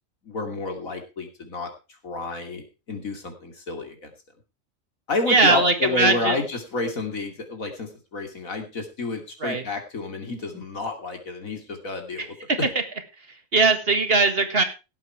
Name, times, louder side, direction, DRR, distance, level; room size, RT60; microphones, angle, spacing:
voice 1, 0.2-1.7 2.0-4.1 5.1-12.3, left 3 dB, 80° left, 5 dB, 3.2 m, -30 dB
voice 2, 5.3-6.4 9.4-9.6 12.2-12.3 13.5-14.6, right 3 dB, 45° right, 8 dB, 1.9 m, -20 dB
17.5 x 8.1 x 4.5 m, 0.30 s
omnidirectional pair, 1.4 m